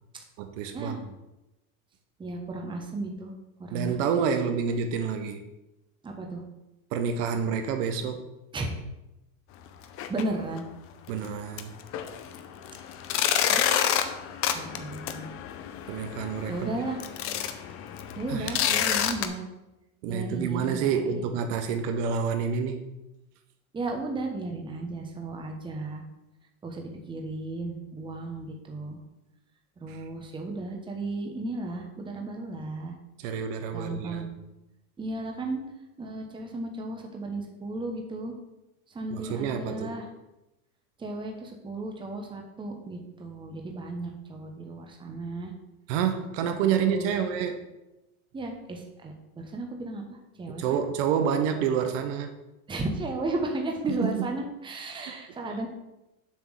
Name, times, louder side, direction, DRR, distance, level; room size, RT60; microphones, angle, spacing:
voice 1, 0.4-0.9 3.7-5.4 6.9-8.2 11.1-11.7 15.9-16.7 18.3-18.6 20.0-22.8 29.9-30.0 33.2-34.3 39.1-39.9 45.9-47.6 50.5-52.3 53.9-54.3 55.1-55.2, right 7 dB, 55° right, 7 dB, 0.9 m, -28 dB
voice 2, 2.2-3.3 3.6-4.0 6.0-6.4 8.5-8.8 10.1-10.6 13.5-13.7 14.5-15.3 16.5-17.0 18.2-19.4 20.1-21.3 23.7-26.0 26.6-29.0 29.8-32.9 33.7-34.3 35.0-35.6 36.0-38.3 38.9-40.1 41.0-45.5 46.4-47.3 48.3-50.8 52.7-55.7, right 2 dB, 10° right, 2 dB, 1.0 m, -34 dB
sound 1, 9.8-10.2 10.6-10.7 11.2-11.3 11.6-19.3, left 9 dB, 30° left, 0.6 m, -29 dB
7.2 x 3.6 x 6.3 m, 0.95 s
supercardioid pair, 125°, 43 cm